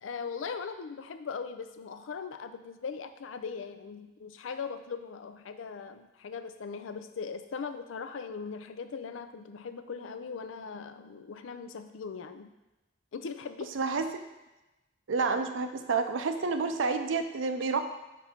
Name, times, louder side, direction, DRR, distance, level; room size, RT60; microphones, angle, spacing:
voice 1, 0.0-12.5 13.1-13.7, left 5 dB, 90° left, 9 dB, 0.4 m, -39 dB
voice 2, 13.7-14.2 15.1-17.8, right 4 dB, 90° right, 8 dB, 0.5 m, -29 dB
5.3 x 4.6 x 4.3 m, 1.0 s
head